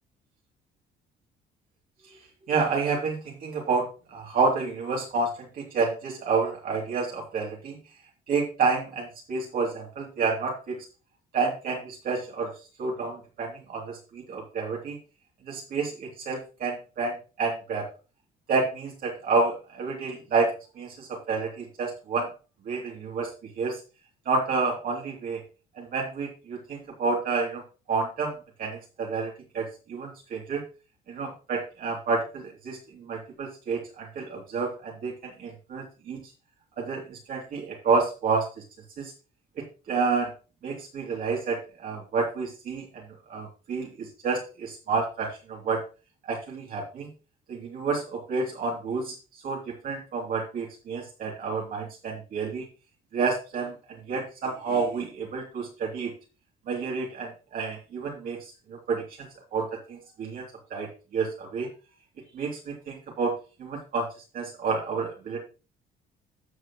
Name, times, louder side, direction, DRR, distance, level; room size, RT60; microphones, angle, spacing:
voice 1, 2.5-7.8 8.3-10.8 11.3-12.5 12.8-15.0 15.5-17.9 18.5-20.5 20.8-22.3 22.6-23.8 24.2-25.4 25.8-27.6 27.9-30.6 31.1-36.3 36.8-38.5 39.0-39.1 39.6-40.3 40.6-43.0 43.3-45.8 46.3-47.1 47.5-49.1 49.4-52.7 53.1-56.1 56.7-60.4 60.7-61.7 62.3-63.3 63.6-64.1 64.3-65.4, right 4 dB, 55° right, -2 dB, 3.0 m, -29 dB
13.0 x 6.4 x 3.1 m, 0.33 s
cardioid pair, 110°, 17 cm